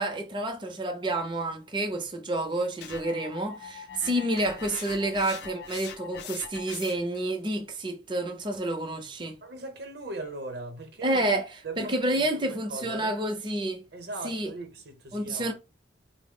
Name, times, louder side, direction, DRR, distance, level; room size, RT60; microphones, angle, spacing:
voice 1, 0.0-9.4 11.0-11.5 11.8-13.8 14.2-14.5 15.1-15.5, right 1 dB, 25° right, 0.5 m, -29 dB
sound 1, 2.8-7.2, left 7 dB, 55° left, 0.5 m, -42 dB
voice 2, 9.4-11.2 11.6-13.2 13.9-15.5, right 2 dB, 55° right, 0.8 m, -39 dB
4.1 x 2.0 x 3.7 m
head